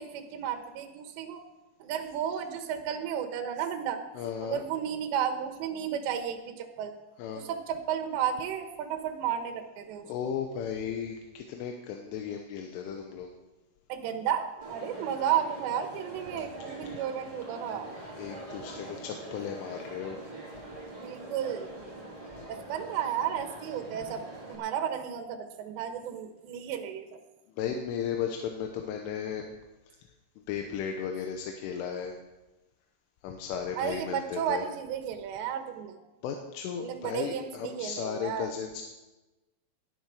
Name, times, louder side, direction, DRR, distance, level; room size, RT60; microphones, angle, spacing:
voice 1, 0.0-1.4 1.8-4.0 4.4-6.9 7.3-10.3 13.9-17.9 21.0-21.7 22.5-24.2 24.5-27.2 33.8-36.0 36.8-38.5, right 9 dB, 75° right, 6 dB, 3.3 m, -33 dB
voice 2, 4.2-4.6 7.2-7.5 10.0-13.3 18.2-20.2 22.2-22.5 27.6-29.5 29.9-30.0 30.5-32.2 33.2-34.6 36.2-38.8, left 7 dB, 85° left, 3 dB, 3.6 m, -35 dB
Crowd, 14.6-24.5, right 2 dB, 10° right, 3.4 m, -44 dB
19.0 x 10.0 x 4.9 m, 1.1 s
omnidirectional pair, 5.5 m